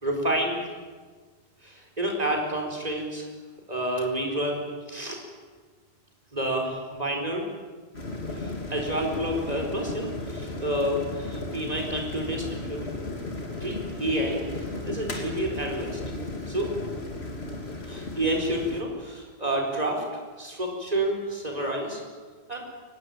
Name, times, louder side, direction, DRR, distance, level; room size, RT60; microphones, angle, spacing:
voice 1, 0.0-0.6 1.6-3.3 3.7-5.2 6.3-7.5 8.4-12.9 13.6-16.0 16.5-16.7 17.9-20.1 20.4-22.0 22.5-22.7, right 1 dB, 40° right, 1 dB, 4.7 m, -29 dB
sound 1, 7.9-18.8, left 2 dB, 85° left, 3.3 m, -35 dB
23.5 x 19.5 x 9.1 m, 1.5 s
omnidirectional pair, 1.0 m